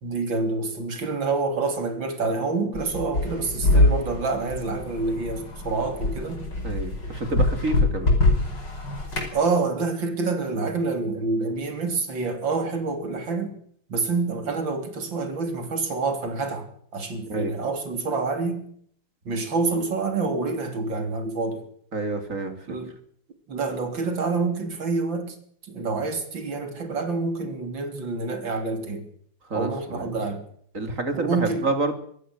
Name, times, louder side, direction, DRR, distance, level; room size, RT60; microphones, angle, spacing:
voice 1, 0.0-6.5 9.3-13.5 13.9-16.7 16.9-18.6 19.3-21.7 22.7-22.9 23.5-25.4 25.7-29.1 29.5-30.4 31.1-31.7, right 3 dB, 80° right, 3.9 m, -27 dB
sound 1, 2.7-9.3, left 2 dB, 65° left, 5.8 m, -24 dB
voice 2, 6.6-8.2 17.3-17.5 21.9-22.6 29.5-30.1 30.7-31.9, right 2 dB, 40° right, 3.6 m, -28 dB
25.5 x 16.0 x 6.4 m
omnidirectional pair, 2.0 m